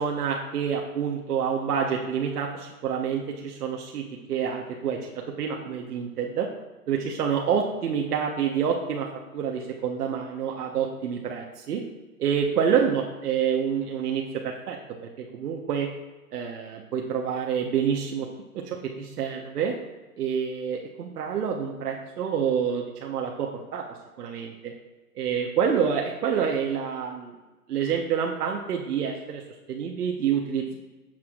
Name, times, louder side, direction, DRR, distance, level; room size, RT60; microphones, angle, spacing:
voice 1, 0.0-5.1 5.4-6.5 6.9-9.1 9.3-11.8 12.2-14.8 15.2-15.9 16.3-18.3 18.5-19.7 20.2-23.8 24.2-24.7 25.1-27.3 27.7-29.4 29.7-30.8, right 7 dB, 75° right, 0 dB, 1.2 m, -27 dB
15.0 x 6.0 x 2.4 m, 1.2 s
hypercardioid pair, 130°, 46 cm